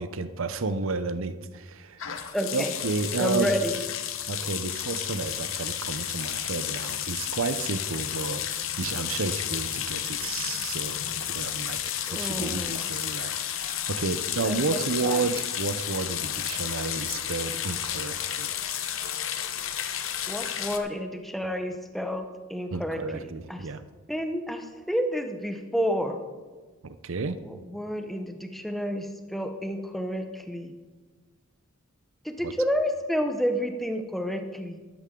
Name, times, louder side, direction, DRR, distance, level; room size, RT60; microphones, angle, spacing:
voice 1, 0.0-2.0 2.5-3.5 4.3-11.0 11.3-18.6 22.7-23.8 26.8-27.4 32.4-32.5, right 4 dB, 65° right, 12 dB, 0.6 m, -31 dB
sound 1, 2.0-20.8, left 10 dB, 60° left, 0.8 m, -32 dB
voice 2, 2.3-2.7 3.2-3.7 12.1-12.8 14.4-15.2 20.3-22.2 22.5-23.7 24.1-26.2 27.4-30.7 32.2-34.8, equal, ahead, 5 dB, 0.8 m, -30 dB
12.5 x 11.5 x 3.7 m, 1.3 s
head